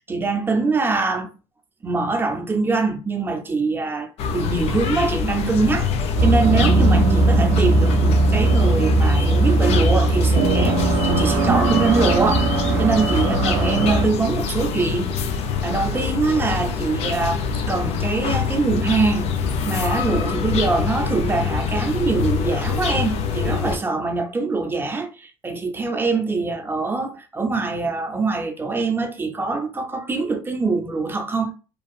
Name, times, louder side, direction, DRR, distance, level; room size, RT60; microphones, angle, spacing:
voice 1, 0.1-1.3 1.8-5.9 6.2-12.5 12.7-31.5, right 3 dB, 20° right, 0.6 m, -23 dB
sound 1, 4.2-23.8, left 6 dB, 60° left, 0.5 m, -25 dB
sound 2, 6.2-14.1, right 3 dB, 75° right, 0.6 m, -19 dB
2.6 x 2.3 x 2.4 m
supercardioid pair, 90°, 12 cm